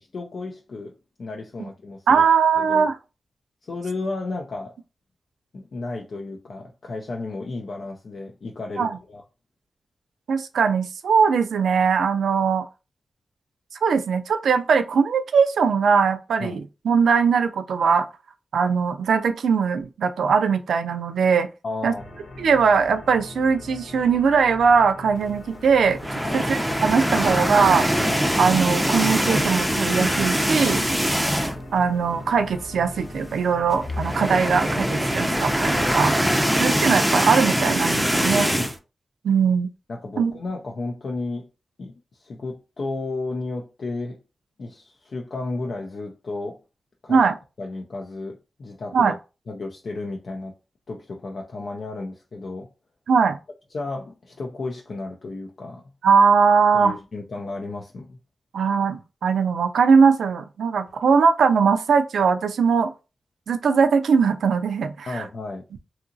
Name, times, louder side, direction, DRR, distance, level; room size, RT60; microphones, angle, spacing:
voice 1, 0.1-2.2 2.6-2.9 3.6-4.7 5.5-9.2 16.4-16.6 21.6-22.0 26.2-26.5 28.0-28.1 36.0-36.1 38.4-38.7 39.9-41.5 41.8-41.9 42.2-44.2 44.6-46.6 47.0-47.2 47.6-49.1 49.5-50.5 50.9-52.7 53.7-55.8 56.7-58.2 65.1-65.6, left 3 dB, 70° left, 0.5 m, -33 dB
voice 2, 2.1-2.9 8.8-8.9 10.3-12.6 13.8-18.1 18.5-21.5 21.8-21.9 22.4-26.0 26.3-27.9 28.4-30.8 31.7-36.1 36.6-38.5 39.2-39.7 40.2-40.3 47.1-47.4 48.9-49.1 53.1-53.4 56.0-56.9 58.5-62.9 63.5-65.2, right 5 dB, 90° right, 0.3 m, -20 dB
sound 1, 21.9-36.3, left 1 dB, 85° left, 0.9 m, -40 dB
sound 2, 25.9-31.8 32.1-32.3 32.6-32.7 33.7-38.8, equal, 5° right, 0.5 m, -23 dB
2.8 x 2.4 x 2.6 m
cardioid pair, 55°, 0 cm